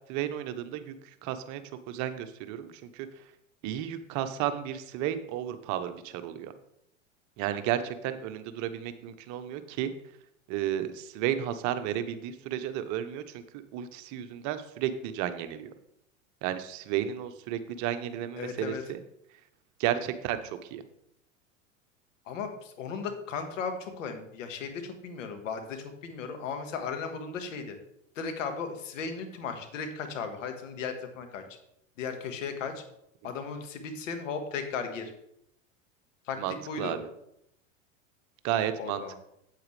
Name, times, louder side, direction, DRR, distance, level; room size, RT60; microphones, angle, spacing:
voice 1, 0.1-0.9 1.2-1.6 1.9-3.1 3.6-6.5 7.4-9.9 10.5-13.2 13.5-15.7 16.4-19.0 19.8-20.8 36.4-37.1 38.4-39.2, right 11 dB, 50° right, 10 dB, 0.9 m, -32 dB
voice 2, 18.4-18.8 22.2-27.8 28.1-31.4 32.0-32.8 33.2-35.1 36.2-36.4 36.7-37.0 38.8-39.2, left 5 dB, 75° left, 6 dB, 1.6 m, -36 dB
8.7 x 8.3 x 3.3 m, 0.77 s
hypercardioid pair, 95°, 38 cm